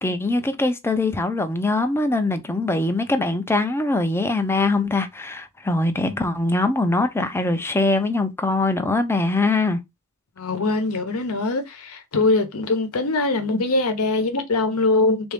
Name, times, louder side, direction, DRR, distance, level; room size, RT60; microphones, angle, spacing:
voice 1, 0.0-9.8, left 2 dB, 10° left, 0.5 m, -22 dB
voice 2, 10.4-15.3, left 2 dB, 75° left, 0.9 m, -22 dB
3.7 x 2.6 x 3.4 m
head